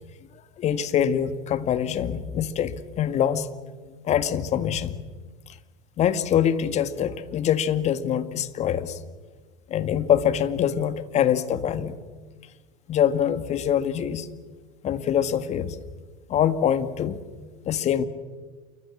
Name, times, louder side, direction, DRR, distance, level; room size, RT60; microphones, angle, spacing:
voice 1, 0.6-3.5 4.0-5.0 6.0-9.0 9.7-11.9 12.9-14.3 14.8-15.8 16.3-17.2 17.7-18.1, left 9 dB, 40° left, 11 dB, 1.9 m, -24 dB
28.5 x 24.0 x 7.3 m, 1.4 s
figure-of-eight pair, 80°, 18 cm